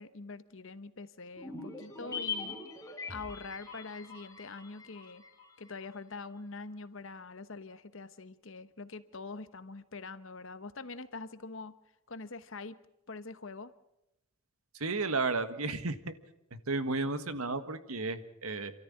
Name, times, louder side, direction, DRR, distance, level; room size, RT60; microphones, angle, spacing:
voice 1, 0.0-2.6 3.1-5.2 5.6-11.7 12.1-12.8 13.1-13.7, left 3 dB, 60° left, 13 dB, 1.0 m, -44 dB
sound 1, 1.4-5.9 6.1-6.2, left 5 dB, 15° left, 3.4 m, -42 dB
voice 2, 14.7-16.1 16.5-18.7, right 3 dB, 75° right, 11 dB, 1.6 m, -33 dB
28.5 x 13.5 x 8.7 m, 0.88 s
head